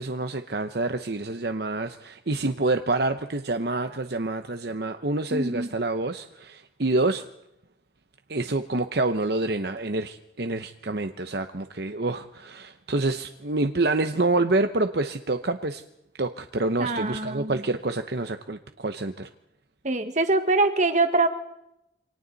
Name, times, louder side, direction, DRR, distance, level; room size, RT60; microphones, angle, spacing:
voice 1, 0.0-7.2 8.3-15.8 16.2-19.3, right 2 dB, 55° right, 7 dB, 0.9 m, -27 dB
voice 2, 5.3-5.7 16.8-17.6 19.8-21.3, right 2 dB, 40° right, 7 dB, 1.8 m, -24 dB
28.0 x 25.0 x 4.1 m, 0.82 s
head